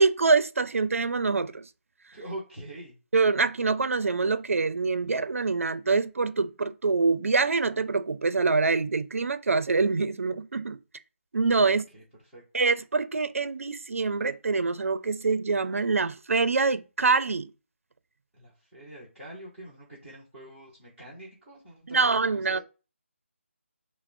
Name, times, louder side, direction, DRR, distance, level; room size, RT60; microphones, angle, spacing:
voice 1, 0.0-1.7 3.1-10.8 11.3-11.8 12.5-17.5 21.9-22.6, right 4 dB, 85° right, 0.4 m, -25 dB
voice 2, 2.1-3.0 11.6-12.4 18.3-22.6, right 1 dB, ahead, 0.6 m, -44 dB
5.8 x 2.0 x 2.5 m
figure-of-eight pair, 180°, 7 cm